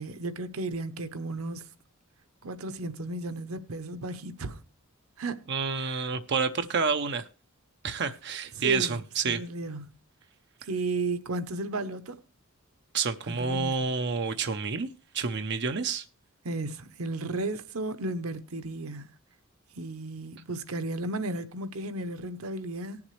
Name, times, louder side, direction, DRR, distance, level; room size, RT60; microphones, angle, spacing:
voice 1, 0.0-1.7 2.4-4.6 5.2-5.4 5.8-6.1 8.5-9.9 10.6-12.2 13.3-13.8 16.4-19.1 19.7-23.0, right 2 dB, 85° right, 0.9 m, -34 dB
voice 2, 5.5-7.3 7.8-9.4 12.9-14.9 15.1-16.0, right 5 dB, 55° right, 0.7 m, -29 dB
19.0 x 7.1 x 3.2 m
head